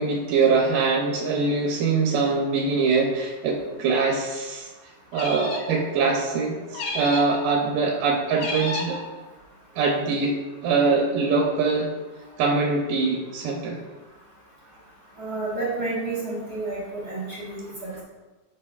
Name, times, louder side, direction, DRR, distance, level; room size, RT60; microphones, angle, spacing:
voice 1, 0.0-4.7 5.1-9.1 9.8-10.4 10.6-11.9 12.4-13.8 17.9-18.0, right 4 dB, 90° right, 0 dB, 2.5 m, -23 dB
sound 1, 5.1-5.8 6.7-7.4 8.4-9.0, left 3 dB, 90° left, 1.2 m, -31 dB
voice 2, 15.2-18.0, right 2 dB, 45° right, -7 dB, 1.3 m, -30 dB
8.7 x 7.1 x 2.4 m, 1.2 s
omnidirectional pair, 3.9 m